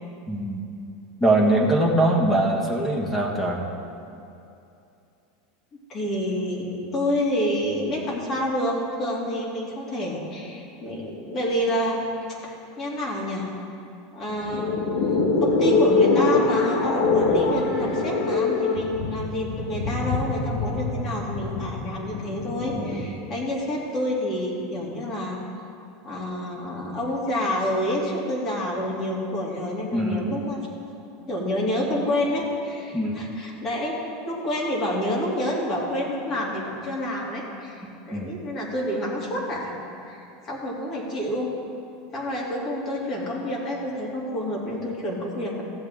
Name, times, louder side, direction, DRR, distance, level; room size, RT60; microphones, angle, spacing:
voice 1, 0.3-0.6 1.2-3.6 22.7-23.1 29.9-30.3 32.9-33.3 38.1-38.2, right 1 dB, 5° left, -1 dB, 1.6 m, -22 dB
voice 2, 5.9-12.0 12.4-13.5 14.1-25.4 26.0-30.6 31.3-34.0 34.2-39.8 40.1-41.5 42.1-45.6, left 1 dB, 40° left, -4 dB, 2.9 m, -28 dB
sound 1, 14.3-23.0, left 3 dB, 70° left, 1.5 m, -23 dB
15.0 x 8.1 x 3.7 m, 2.7 s
supercardioid pair, 120°, 0 cm